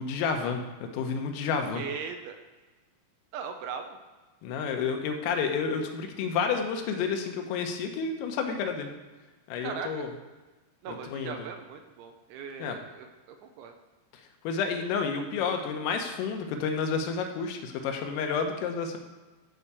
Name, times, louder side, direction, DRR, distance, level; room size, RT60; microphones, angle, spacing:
voice 1, 0.0-1.8 4.4-8.9 9.5-10.1 11.1-11.5 12.6-12.8 14.5-19.0, left 5 dB, 85° left, 4 dB, 3.8 m, -30 dB
voice 2, 1.7-2.4 3.3-4.0 9.6-10.1 10.8-13.7, right 6 dB, 80° right, 5 dB, 2.9 m, -39 dB
13.0 x 4.8 x 6.9 m, 1.2 s
omnidirectional pair, 5.8 m